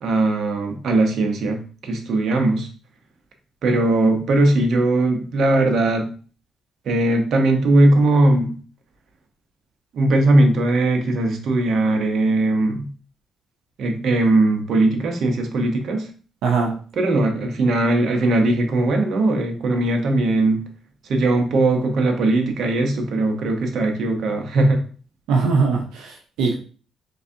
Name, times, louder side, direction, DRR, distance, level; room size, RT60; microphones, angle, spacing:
voice 1, 0.0-2.7 3.6-6.1 6.8-8.6 9.9-12.9 13.8-16.1 17.0-20.6 21.0-24.8, right 2 dB, 65° right, 4 dB, 0.9 m, -19 dB
voice 2, 16.4-16.8 25.3-26.5, right 4 dB, 90° right, 0 dB, 0.7 m, -21 dB
3.9 x 3.4 x 2.7 m, 0.40 s
cardioid pair, 90°, 0 cm